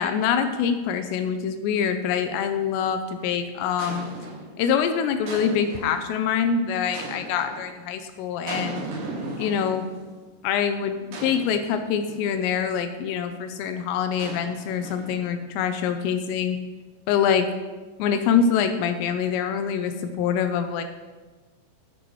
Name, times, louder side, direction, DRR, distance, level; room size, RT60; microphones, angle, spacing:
voice 1, 0.0-4.1 4.6-8.9 9.4-9.8 10.4-16.6 17.1-17.5 18.0-20.8, left 7 dB, 85° left, 8 dB, 2.6 m, -25 dB
sound 1, 2.5-2.9 3.8-4.6 5.3-6.1 6.9-7.7 8.5-10.1 11.1-12.4 14.2-15.4, right 2 dB, 60° right, 3.9 m, -37 dB
10.0 x 9.9 x 3.1 m, 1.3 s
omnidirectional pair, 5.4 m